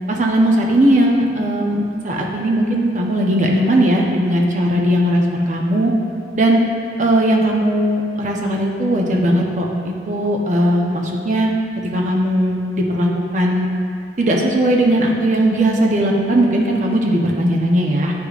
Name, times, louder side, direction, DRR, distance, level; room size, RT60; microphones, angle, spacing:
voice 1, 0.1-5.9 6.3-6.6 7.0-11.5 11.9-13.7 14.2-18.1, right 1 dB, 45° right, -1 dB, 0.7 m, -18 dB
9.5 x 5.0 x 2.4 m, 2.3 s
head